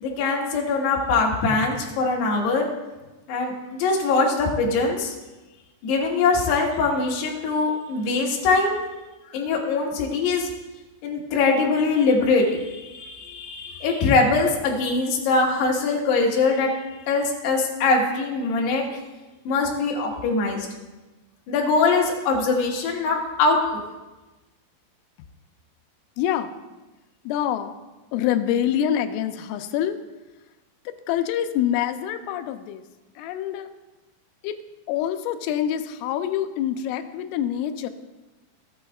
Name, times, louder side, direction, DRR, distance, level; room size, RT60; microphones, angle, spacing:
voice 1, 0.0-2.7 3.3-5.1 5.8-8.7 9.3-10.5 11.0-16.7 17.1-18.8 19.4-20.7 21.5-23.6, left 3 dB, 65° left, -1 dB, 3.2 m, -22 dB
voice 2, 26.2-26.5 27.3-27.7 28.1-30.0 30.9-32.8 33.2-33.7 34.4-34.6 34.9-37.9, left 10 dB, 85° left, 8 dB, 3.2 m, -26 dB
17.0 x 8.9 x 2.3 m, 1.1 s
omnidirectional pair, 5.7 m